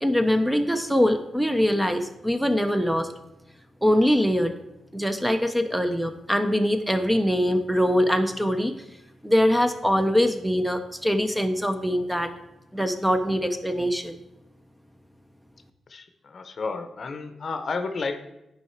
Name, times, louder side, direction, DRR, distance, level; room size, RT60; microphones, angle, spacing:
voice 1, 0.0-3.1 3.8-4.5 4.9-8.7 9.2-12.3 12.7-14.2, equal, 5° right, 7 dB, 0.7 m, -23 dB
voice 2, 15.9-18.2, left 4 dB, 50° left, 8 dB, 0.8 m, -32 dB
10.0 x 4.8 x 4.5 m, 0.91 s
cardioid pair, 95°, 0 cm